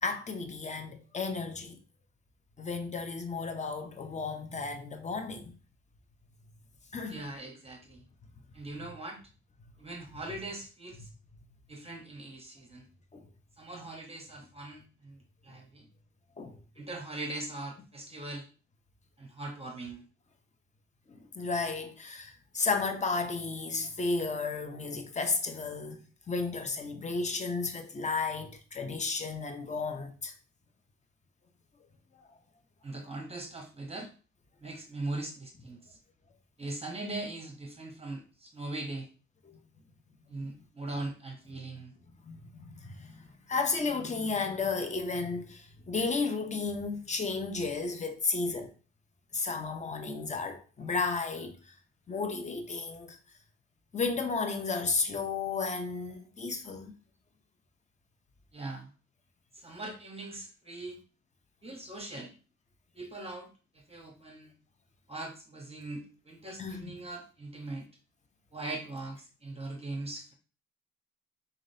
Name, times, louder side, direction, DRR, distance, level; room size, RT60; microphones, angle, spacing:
voice 1, 0.0-1.8 2.6-5.6 6.9-7.2 13.1-13.2 16.4-16.6 21.1-26.0 26.3-30.3 42.2-48.7 49.3-51.7 52.1-53.2 53.9-56.9 66.6-66.9, left 4 dB, 25° left, 0.7 m, -33 dB
voice 2, 7.1-8.0 8.5-9.2 9.8-11.1 11.7-12.9 13.6-15.2 15.4-15.8 16.8-18.5 19.2-20.0 32.8-34.1 34.6-36.0 36.6-39.1 40.3-41.9 58.5-58.9 59.5-61.0 61.6-62.3 62.9-64.5 65.1-67.9 68.5-70.3, right 2 dB, 20° right, 0.9 m, -40 dB
3.8 x 3.7 x 2.6 m
cardioid pair, 90°, 30 cm